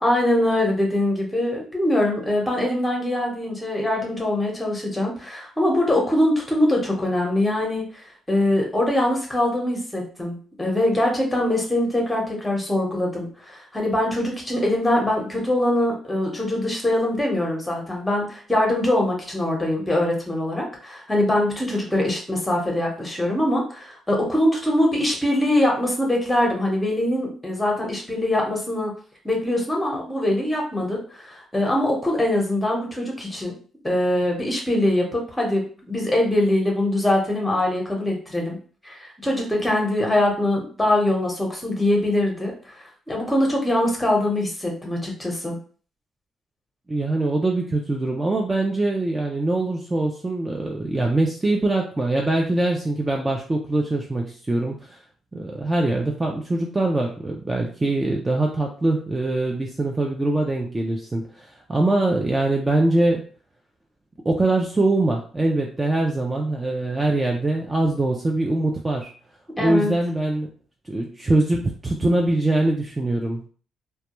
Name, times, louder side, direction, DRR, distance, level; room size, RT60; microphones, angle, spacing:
voice 1, 0.0-7.9 8.3-28.9 29.2-33.5 33.8-38.6 38.8-42.5 43.1-45.6 69.6-70.0, left 1 dB, 10° left, 0 dB, 0.9 m, -23 dB
voice 2, 46.9-55.0 55.3-63.2 64.3-69.1 69.6-70.5 70.9-73.5, right 2 dB, 20° right, 0 dB, 0.4 m, -23 dB
2.2 x 2.2 x 2.9 m, 0.42 s
cardioid pair, 90°, 0 cm